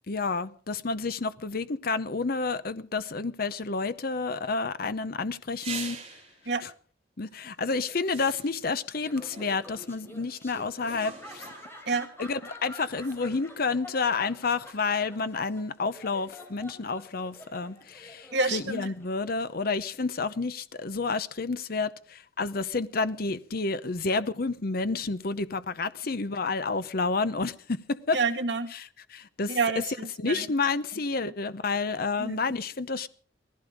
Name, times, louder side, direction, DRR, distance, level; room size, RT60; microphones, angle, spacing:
voice 1, 0.1-6.0 6.6-6.7 7.2-11.4 12.2-28.2 28.7-29.6 30.2-33.1, left 4 dB, 55° left, 0.8 m, -30 dB
sound 1, 5.5-6.4 7.3-7.5 8.0-8.8 9.3-9.9 10.9-11.9 13.0-13.1, right 5 dB, 30° right, 3.7 m, -42 dB
Laughter, 8.9-19.3, left 1 dB, 15° left, 3.6 m, -48 dB
voice 2, 18.3-18.8 28.1-28.7 29.5-30.4 32.2-32.4, right 4 dB, 65° right, 1.8 m, -28 dB
18.5 x 15.0 x 5.1 m
head